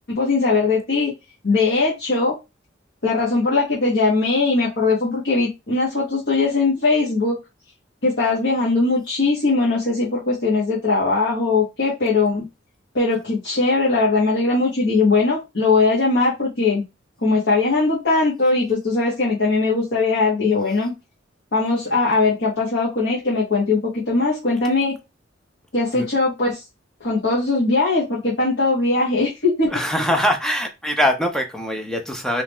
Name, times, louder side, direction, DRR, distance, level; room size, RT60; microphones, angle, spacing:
voice 1, 0.1-1.1 1.4-2.3 3.0-7.4 8.0-12.4 12.9-16.8 17.2-20.9 21.5-24.9 25.7-26.6 27.0-29.7, left 3 dB, 65° left, 1.3 m, -20 dB
voice 2, 29.7-32.4, equal, 5° left, 0.7 m, -22 dB
3.6 x 2.8 x 3.0 m
head